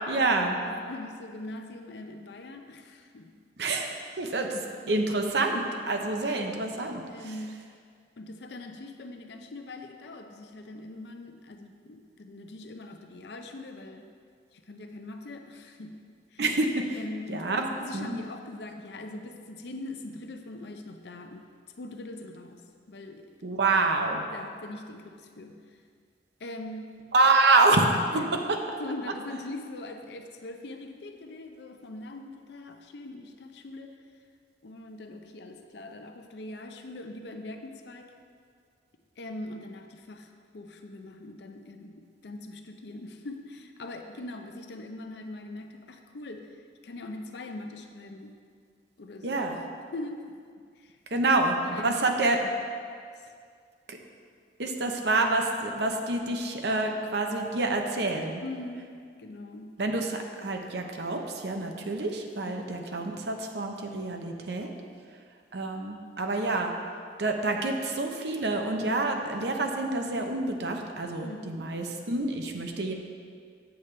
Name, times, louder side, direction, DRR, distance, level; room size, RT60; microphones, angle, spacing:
voice 1, 0.1-0.5 3.6-4.6 4.9-7.0 16.4-17.0 17.3-17.7 17.9-18.2 23.4-24.2 27.1-27.9 28.5-28.8 49.2-49.6 51.1-52.4 53.9-54.0 54.6-58.4 59.8-64.7 65.5-66.7 67.2-72.9, right 2 dB, 65° right, 3 dB, 0.7 m, -27 dB
voice 2, 0.7-3.3 4.2-4.3 7.1-7.6 8.2-14.1 14.5-16.0 16.3-16.4 17.0-21.5 21.8-22.6 22.9-23.4 24.3-25.6 26.4-26.9 28.1-28.3 28.8-33.9 34.6-38.1 39.2-48.3 49.0-49.4 49.9-50.4 50.8-51.2 51.7-52.1 53.2-53.3 58.4-59.7 62.5-62.7 71.2-71.6, left 2 dB, 65° left, 5 dB, 0.6 m, -42 dB
8.2 x 8.0 x 3.3 m, 2.1 s
head